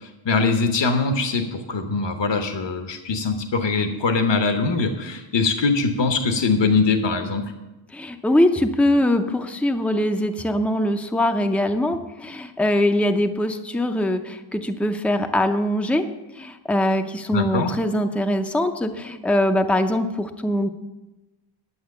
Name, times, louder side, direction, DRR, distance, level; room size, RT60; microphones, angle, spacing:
voice 1, 0.2-7.5 17.3-17.7, left 4 dB, 60° left, 6 dB, 1.1 m, -22 dB
voice 2, 7.9-16.1 16.4-20.7, left 1 dB, 5° left, 6 dB, 0.6 m, -22 dB
11.0 x 7.8 x 6.6 m, 1.1 s
wide cardioid pair, 145°, 49 cm